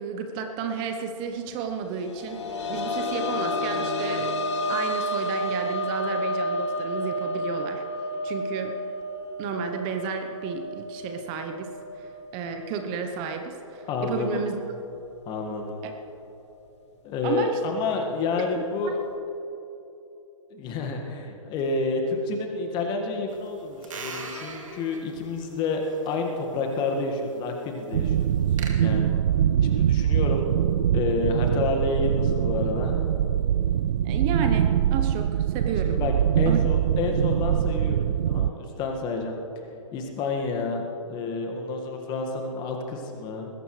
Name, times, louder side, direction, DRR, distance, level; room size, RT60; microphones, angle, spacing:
voice 1, 0.0-4.3 4.7-7.8 8.2-8.7 9.4-11.7 12.0-14.6 17.2-17.6 18.4-18.5 18.8-18.9 34.0-36.0 36.5-36.7, right 6 dB, 30° right, 6 dB, 1.0 m, -32 dB
sound 1, 2.0-13.4 13.8-13.9 15.4-15.5, left 1 dB, 55° left, 1.6 m, -31 dB
voice 2, 13.9-14.5 15.3-15.8 17.0-19.0 20.5-28.3 28.8-29.1 29.6-30.4 30.9-33.0 35.8-39.4 39.9-43.5, left 3 dB, 25° left, 2 dB, 1.8 m, -29 dB
sound 2, 23.3-28.7, right 4 dB, 70° right, 2.4 m, -43 dB
sound 3, 27.9-38.5, right 10 dB, 55° right, 0.4 m, -23 dB
20.5 x 16.5 x 3.3 m, 2.9 s
figure-of-eight pair, 125°, 17 cm